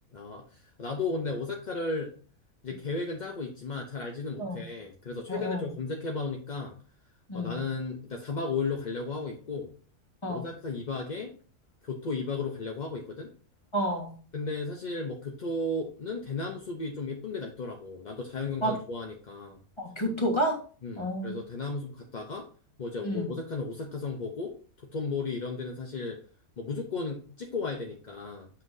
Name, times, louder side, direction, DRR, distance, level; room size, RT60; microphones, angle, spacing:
voice 1, 0.1-2.1 2.6-6.7 7.3-9.7 10.3-11.3 11.8-13.3 14.3-19.6 20.8-22.5 22.8-24.6 24.8-26.2 26.6-28.5, left 3 dB, 40° left, 1 dB, 0.6 m, -34 dB
voice 2, 5.3-5.7 7.3-7.6 10.2-10.4 13.7-14.2 18.6-18.7 19.8-20.6 20.9-21.4 23.0-23.3, equal, 20° left, 1 dB, 1.5 m, -30 dB
7.8 x 5.8 x 2.7 m, 0.40 s
omnidirectional pair, 1.7 m